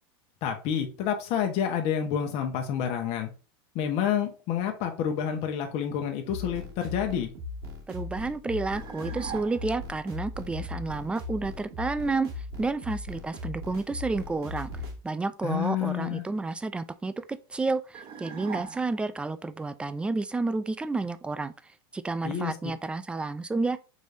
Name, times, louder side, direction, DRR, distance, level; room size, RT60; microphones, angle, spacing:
voice 1, 0.4-3.3 3.7-7.3 15.4-16.2 22.2-22.5, left 9 dB, 50° left, 1.1 m, -29 dB
sound 1, 6.3-15.0, left 2 dB, 75° right, 1.7 m, -38 dB
voice 2, 7.9-14.7 15.0-21.5 21.9-23.8, right 3 dB, 10° right, 0.3 m, -30 dB
sound 2, 8.7-9.9 17.9-19.2, right 8 dB, 40° right, 1.0 m, -41 dB
5.3 x 3.3 x 2.6 m
supercardioid pair, 120°, 13 cm